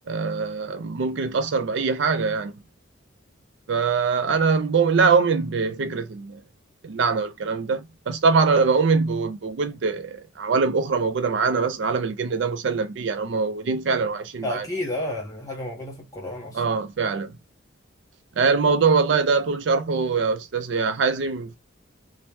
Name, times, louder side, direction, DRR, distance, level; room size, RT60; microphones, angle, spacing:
voice 1, 0.1-2.5 3.7-6.4 6.8-14.7 16.5-17.3 18.4-21.6, right 4 dB, 60° right, 0.4 m, -23 dB
voice 2, 14.4-16.6, left 1 dB, 15° left, 1.0 m, -31 dB
2.8 x 2.1 x 3.2 m
head